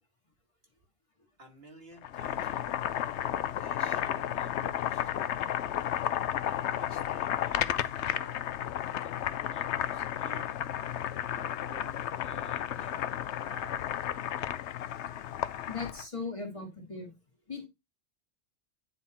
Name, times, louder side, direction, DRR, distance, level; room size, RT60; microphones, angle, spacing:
voice 1, 1.4-5.7 6.4-8.5 9.0-10.5 11.3-13.8, right 2 dB, 60° right, 2 dB, 2.1 m, -53 dB
Boiling, 2.0-16.0, left 11 dB, 85° left, 0.9 m, -33 dB
voice 2, 15.5-17.1 17.5-17.7, left 4 dB, 30° left, 0 dB, 2.1 m, -38 dB
9.8 x 3.7 x 4.2 m, 0.22 s
omnidirectional pair, 1.1 m